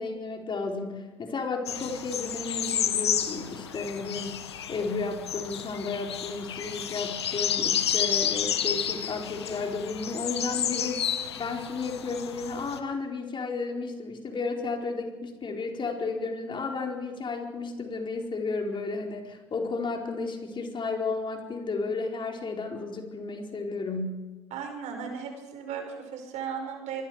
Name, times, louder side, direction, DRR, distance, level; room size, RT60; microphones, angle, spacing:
voice 1, 0.0-24.2, left 4 dB, 40° left, 1 dB, 4.5 m, -33 dB
sound 1, 1.7-12.8, left 9 dB, 90° left, 1.4 m, -31 dB
voice 2, 24.5-27.0, right 7 dB, 60° right, 4 dB, 5.6 m, -36 dB
25.5 x 22.0 x 4.9 m, 1.2 s
hypercardioid pair, 60°, 13 cm